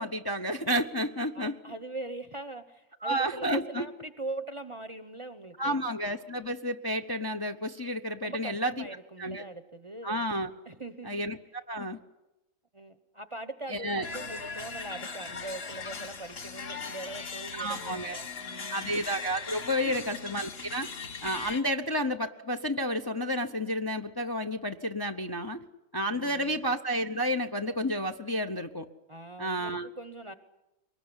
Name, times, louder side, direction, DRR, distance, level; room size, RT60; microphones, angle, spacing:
voice 1, 0.0-1.6 3.0-3.9 5.6-8.9 9.2-9.4 10.0-10.5 11.1-11.4 11.7-12.0 13.7-14.1 17.5-18.2 18.7-20.9 21.2-25.6 25.9-28.9 29.4-29.9, equal, 20° left, 5 dB, 0.8 m, -31 dB
voice 2, 1.3-5.9 8.2-10.3 10.6-11.3 12.7-18.9 19.8-20.0 21.5-21.7 26.1-26.6 29.1-30.3, right 2 dB, 25° right, 10 dB, 0.9 m, -42 dB
sound 1, 14.0-21.6, left 4 dB, 45° left, 1.5 m, -39 dB
23.5 x 20.5 x 9.7 m, 0.99 s
omnidirectional pair, 1.5 m